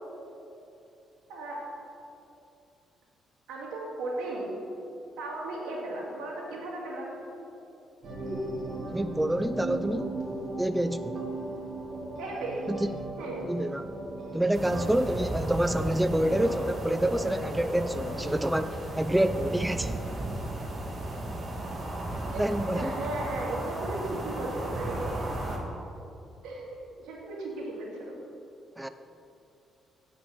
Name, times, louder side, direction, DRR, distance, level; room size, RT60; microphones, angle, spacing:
voice 1, 1.3-1.6 3.5-4.6 5.2-7.2 12.2-12.7 13.2-13.5 22.3-22.4 22.7-25.0 26.4-28.1, right 2 dB, 90° right, -3 dB, 2.3 m, -36 dB
sound 1, 8.0-15.0, right 2 dB, 60° right, 2.4 m, -37 dB
voice 2, 8.9-10.2 10.6-11.2 12.7-13.1 13.5-13.9 14.3-20.0 22.4-22.9 28.8-28.9, right 1 dB, 10° right, 10 dB, 0.3 m, -27 dB
sound 2, 14.5-25.6, right 1 dB, 35° right, 1.5 m, -34 dB
8.6 x 6.2 x 6.0 m, 2.8 s
cardioid pair, 90°, 0 cm